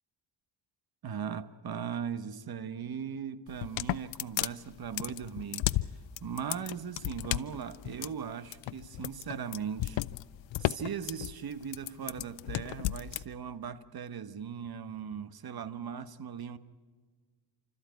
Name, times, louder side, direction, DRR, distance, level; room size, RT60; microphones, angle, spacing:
voice 1, 1.0-5.7 6.2-10.0 10.6-16.6, right 7 dB, 55° right, 1.2 m, -39 dB
sound 1, 3.5-13.2, left 15 dB, 85° left, 0.6 m, -34 dB
30.0 x 13.5 x 9.3 m
cardioid pair, 95°, 44 cm